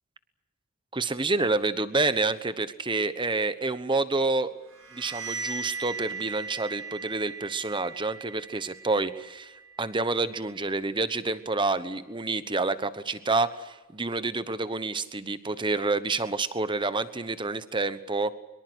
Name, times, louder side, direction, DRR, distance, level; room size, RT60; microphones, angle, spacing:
voice 1, 0.9-4.5 4.9-9.5 9.8-18.3, right 3 dB, 20° right, 13 dB, 1.1 m, -28 dB
sound 1, 4.7-10.3, right 4 dB, 70° right, 7.5 m, -39 dB
23.5 x 23.0 x 8.1 m, 1.1 s
head